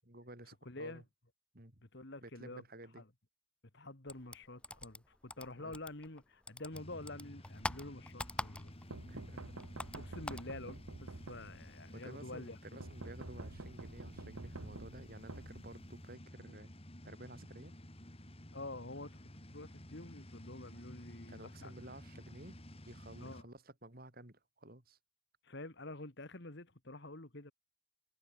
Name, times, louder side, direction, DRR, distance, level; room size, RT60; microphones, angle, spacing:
voice 1, 0.1-1.0 1.5-1.8 2.2-3.0 5.6-5.8 9.0-9.5 11.9-16.7 17.0-17.7 21.3-22.6 22.9-25.0, right 1 dB, 45° right, 3.9 m, -53 dB
voice 2, 0.6-1.0 1.8-2.6 2.9-3.1 3.7-8.7 9.9-12.8 18.5-21.8 23.2-23.5 25.4-27.5, left 2 dB, 50° left, 2.1 m, -48 dB
sound 1, 4.1-6.2 6.5-9.0 9.2-10.5, left 1 dB, 5° left, 1.9 m, -43 dB
sound 2, 6.7-23.4, equal, 25° left, 3.9 m, -53 dB
sound 3, 8.9-11.9 12.8-16.1, right 2 dB, 90° right, 1.5 m, -49 dB
head